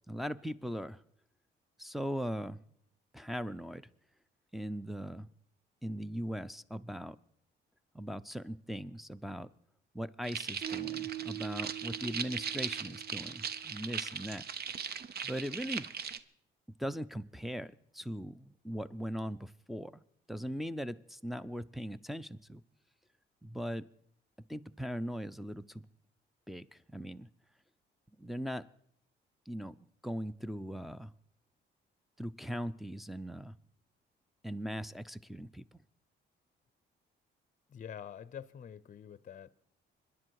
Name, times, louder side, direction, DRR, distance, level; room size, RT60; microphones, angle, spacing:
voice 1, 0.1-1.0 1.8-2.6 3.1-3.8 4.5-5.3 5.8-7.2 7.9-9.5 9.9-14.4 15.2-15.9 16.8-20.0 20.3-22.6 23.4-23.9 24.5-25.8 26.5-27.3 28.2-28.7 29.5-31.1 32.2-33.5 34.4-35.7, equal, ahead, 8 dB, 0.6 m, -39 dB
sound 1, 10.2-16.2, right 7 dB, 55° right, 0.8 m, -39 dB
sound 2, 10.6-13.8, right 14 dB, 30° right, 4.5 m, -43 dB
voice 2, 37.7-39.5, left 8 dB, 40° left, 18 dB, 0.6 m, -46 dB
25.5 x 10.5 x 4.8 m, 0.70 s
cardioid pair, 90°, 20 cm